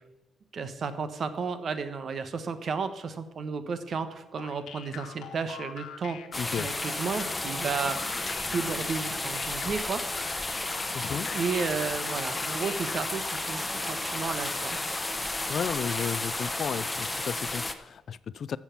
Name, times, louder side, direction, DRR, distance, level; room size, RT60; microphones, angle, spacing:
voice 1, 0.5-6.2 6.6-10.0 11.3-14.8, right 5 dB, 50° right, 11 dB, 1.1 m, -33 dB
sound 1, 4.4-13.5, left 8 dB, 80° left, 1.3 m, -44 dB
sound 2, 6.3-17.7, left 2 dB, 15° left, 0.8 m, -32 dB
voice 2, 6.4-6.7 10.9-11.3 15.5-18.6, left 7 dB, 55° left, 18 dB, 0.4 m, -33 dB
sound 3, 9.8-17.2, right 5 dB, 65° right, 1.5 m, -47 dB
13.5 x 7.3 x 5.9 m, 1.1 s
cardioid pair, 120°, 0 cm